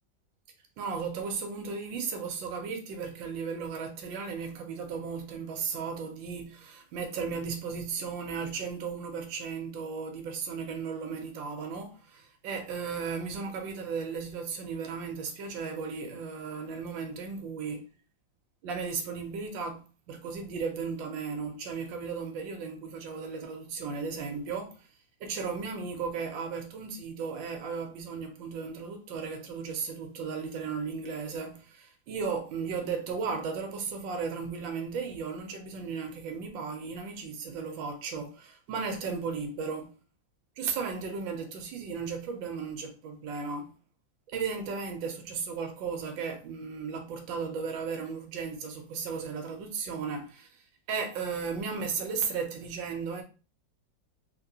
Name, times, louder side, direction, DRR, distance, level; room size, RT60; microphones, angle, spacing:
voice 1, 0.8-17.8 18.6-24.9 25.2-39.9 40.6-43.8 44.3-50.6 50.9-53.2, right 5 dB, 75° right, 1.4 m, -35 dB
3.7 x 2.9 x 2.6 m
omnidirectional pair, 2.1 m